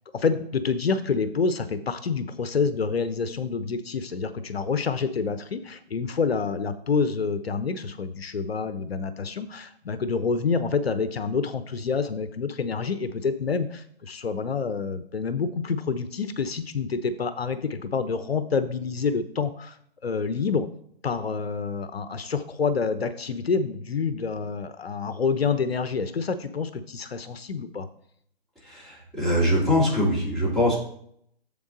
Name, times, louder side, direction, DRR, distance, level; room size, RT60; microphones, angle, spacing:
voice 1, 0.1-19.8 20.0-20.7 21.0-27.9, left 5 dB, 70° left, 11 dB, 0.8 m, -27 dB
voice 2, 28.6-30.8, left 1 dB, ahead, -9 dB, 2.2 m, -23 dB
7.4 x 7.0 x 3.8 m, 0.66 s
hypercardioid pair, 155°, 32 cm